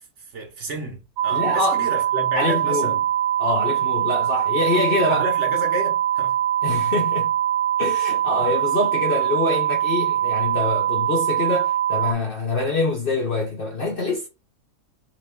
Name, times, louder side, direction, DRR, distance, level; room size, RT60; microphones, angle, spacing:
voice 1, 0.3-3.0 5.1-6.4, right 1 dB, 55° right, 1.1 m, -30 dB
sound 1, 1.2-12.1, right 11 dB, 75° right, 1.1 m, -22 dB
voice 2, 1.3-1.8 2.3-3.0 3.4-5.2 6.6-7.3 7.8-14.3, left 3 dB, 55° left, 0.6 m, -25 dB
3.3 x 2.9 x 3.4 m
omnidirectional pair, 1.6 m